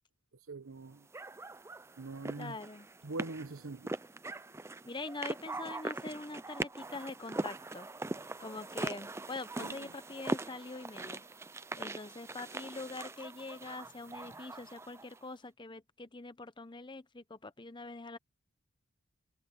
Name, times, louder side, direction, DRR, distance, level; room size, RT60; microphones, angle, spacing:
voice 1, 0.5-1.1 2.0-2.6 3.0-4.0 9.6-9.9, right 3 dB, 80° right, 0.9 m, -43 dB
sound 1, 1.1-15.2, right 2 dB, 10° right, 0.4 m, -41 dB
voice 2, 2.4-2.9 4.8-7.9 8.4-11.2 11.8-18.2, left 3 dB, 20° left, 0.7 m, -44 dB
head